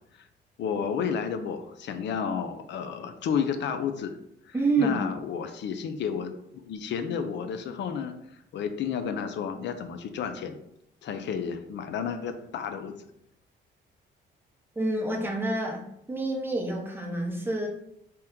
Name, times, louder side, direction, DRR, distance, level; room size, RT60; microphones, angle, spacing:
voice 1, 0.6-4.2 4.5-6.3 6.6-8.1 8.5-10.6 11.0-13.1, left 7 dB, 65° left, 8 dB, 0.4 m, -31 dB
voice 2, 4.5-5.0 14.8-15.8 16.1-17.7, right 2 dB, 10° right, 0 dB, 0.7 m, -27 dB
2.9 x 2.2 x 3.5 m, 0.77 s
cardioid pair, 90°, 20 cm